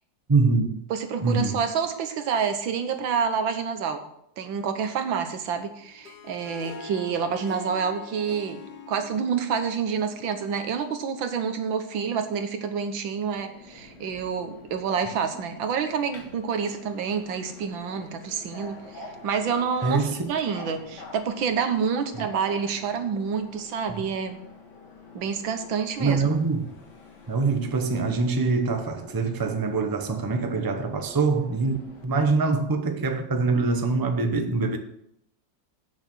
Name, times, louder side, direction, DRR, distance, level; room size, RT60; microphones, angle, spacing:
voice 1, 0.3-0.8 1.2-1.6 19.8-20.3 23.9-24.1 26.0-26.7 27.3-34.8, right 4 dB, 35° right, 0.3 m, -24 dB
voice 2, 0.9-4.0 4.4-8.6 8.9-24.4 25.2-26.2, right 6 dB, 85° right, 1.8 m, -28 dB
Harp, 5.8-11.1, left 5 dB, 85° left, 0.4 m, -43 dB
Subway metro underground, 13.3-32.1, left 2 dB, 65° left, 2.1 m, -47 dB
8.6 x 7.0 x 6.1 m
omnidirectional pair, 2.1 m